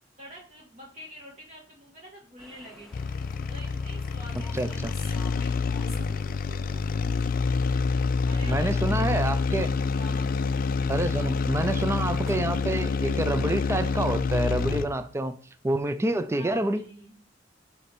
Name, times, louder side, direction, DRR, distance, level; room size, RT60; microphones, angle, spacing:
voice 1, 0.2-3.1 3.5-7.0 8.2-10.5 11.2-11.6 16.3-17.2, equal, 40° right, 1.5 m, -47 dB
sound 1, 2.4-12.4, left 1 dB, ahead, 0.8 m, -50 dB
sound 2, 2.9-15.0, left 4 dB, 50° left, 0.4 m, -27 dB
voice 2, 4.5-4.9 8.4-9.7 10.9-15.4 15.6-16.8, right 1 dB, 15° right, 0.4 m, -28 dB
6.8 x 4.2 x 5.2 m
head